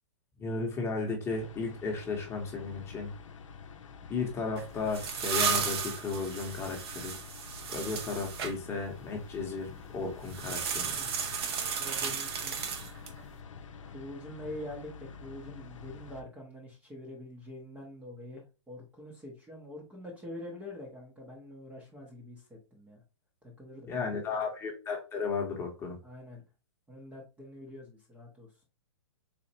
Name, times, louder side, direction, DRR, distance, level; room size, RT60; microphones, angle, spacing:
voice 1, 0.4-3.1 4.1-7.1 7.7-10.9 23.9-26.0, left 4 dB, 15° left, 2 dB, 0.9 m, -34 dB
sound 1, 1.3-16.2, left 5 dB, 85° left, 0.6 m, -48 dB
sound 2, 4.6-8.5 10.3-13.2, right 6 dB, 55° right, 0.8 m, -34 dB
voice 2, 10.9-11.4 11.8-12.6 13.9-23.0 23.6-24.5 26.0-26.4 26.9-28.5, left 1 dB, 10° right, -2 dB, 0.7 m, -45 dB
4.2 x 2.4 x 2.8 m, 0.30 s
hypercardioid pair, 140°, 16 cm